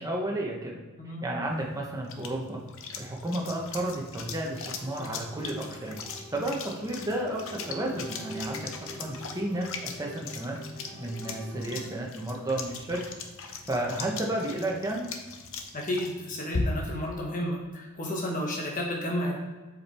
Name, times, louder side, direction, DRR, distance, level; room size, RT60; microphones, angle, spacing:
voice 1, 0.0-0.8 1.2-2.6 3.0-6.0 6.3-8.7 9.0-10.6 11.0-13.0 13.4-15.1, right 1 dB, 15° right, -1 dB, 1.2 m, -32 dB
sound 1, 1.5-17.0, left 4 dB, 65° left, 0.8 m, -40 dB
sound 2, 4.7-11.9, equal, 70° right, 1.4 m, -46 dB
voice 2, 15.7-19.4, left 1 dB, 35° left, -1 dB, 1.3 m, -32 dB
7.6 x 5.3 x 4.4 m, 1.3 s
head